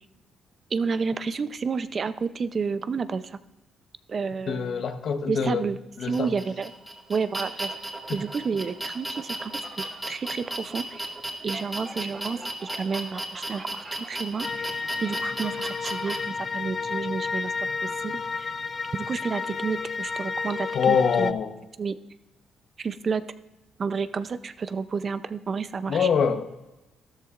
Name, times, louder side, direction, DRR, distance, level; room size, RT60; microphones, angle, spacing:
voice 1, 0.7-3.4 4.1-4.9 5.3-6.7 7.1-7.7 8.1-9.5 9.8-11.1 11.4-17.5 17.8-18.5 18.9-21.3 21.8-21.9 22.8-23.2 23.8-26.1, right 5 dB, 45° right, 13 dB, 0.5 m, -30 dB
voice 2, 4.5-5.7 6.0-6.3 20.7-21.5 25.9-26.4, left 6 dB, 60° left, 8 dB, 1.0 m, -24 dB
sound 1, 6.1-16.2, right 1 dB, 15° right, 1.9 m, -35 dB
sound 2, 14.4-21.3, left 4 dB, 40° left, 0.4 m, -32 dB
13.5 x 13.0 x 2.5 m, 1.0 s
cardioid pair, 90°, 0 cm